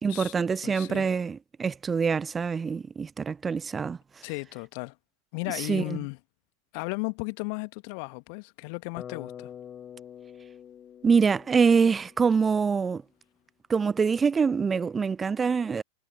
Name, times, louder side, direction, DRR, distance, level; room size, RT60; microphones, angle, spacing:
voice 1, 0.0-4.0 5.7-6.0 11.0-13.0 13.7-15.8, right 5 dB, 15° right, 0.4 m, -25 dB
voice 2, 0.6-1.1 4.2-4.9 5.3-6.2 6.7-9.5, left 35 dB, 45° left, 1.6 m, -35 dB
Bass guitar, 9.0-13.1, left 9 dB, 25° left, 5.9 m, -46 dB
figure-of-eight pair, 90°, 0 cm